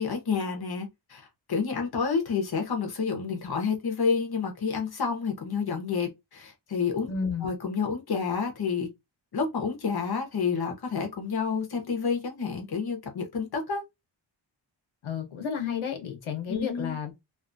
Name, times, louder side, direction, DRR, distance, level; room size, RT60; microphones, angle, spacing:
voice 1, 0.0-7.1 7.4-8.9 9.3-13.8 16.5-17.0, left 5 dB, 50° left, 1.0 m, -29 dB
voice 2, 7.1-7.5 15.0-17.1, left 7 dB, 85° left, 1.0 m, -32 dB
2.7 x 2.4 x 2.6 m
wide cardioid pair, 125°, 48 cm